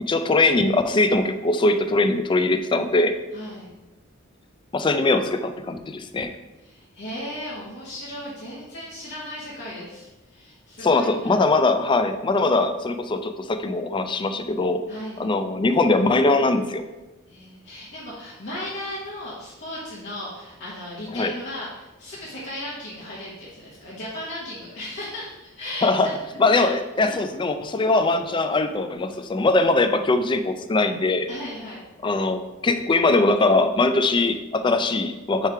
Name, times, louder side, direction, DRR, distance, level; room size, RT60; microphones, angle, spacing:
voice 1, 0.1-3.1 4.7-6.3 10.8-14.8 15.2-16.8 21.1-21.3 25.8-26.1 26.4-31.3 32.0-35.5, left 2 dB, 25° left, 9 dB, 0.4 m, -21 dB
voice 2, 3.3-3.7 6.6-11.4 14.9-15.3 17.3-26.7 27.0-27.2 31.3-31.8, left 1 dB, 60° left, -8 dB, 1.3 m, -36 dB
6.5 x 3.3 x 4.5 m, 1.1 s
head